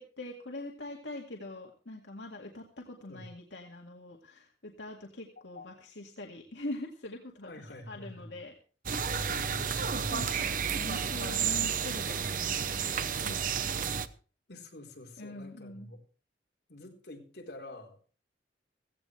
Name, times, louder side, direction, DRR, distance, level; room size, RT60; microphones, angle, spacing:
voice 1, 0.0-8.5 9.4-13.8 15.2-15.9, left 2 dB, 85° left, 1 dB, 2.1 m, -44 dB
voice 2, 7.5-8.3 9.3-10.2 14.5-16.0 16.7-18.1, left 1 dB, 65° left, 1 dB, 4.3 m, -46 dB
sound 1, 8.9-14.1, right 7 dB, 50° right, 0.9 m, -31 dB
16.5 x 16.0 x 3.3 m, 0.37 s
head